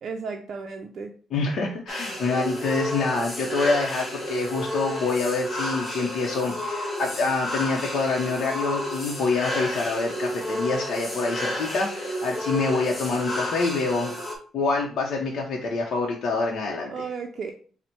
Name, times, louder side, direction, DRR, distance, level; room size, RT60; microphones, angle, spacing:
voice 1, 0.0-1.1 16.9-17.5, right 5 dB, 55° right, 3 dB, 0.5 m, -34 dB
voice 2, 1.3-14.1 14.5-17.1, left 3 dB, 65° left, -1 dB, 0.7 m, -26 dB
sound 1, 1.9-14.4, equal, 15° left, 1.2 m, -31 dB
4.1 x 2.1 x 4.4 m, 0.42 s
cardioid pair, 90°, 0 cm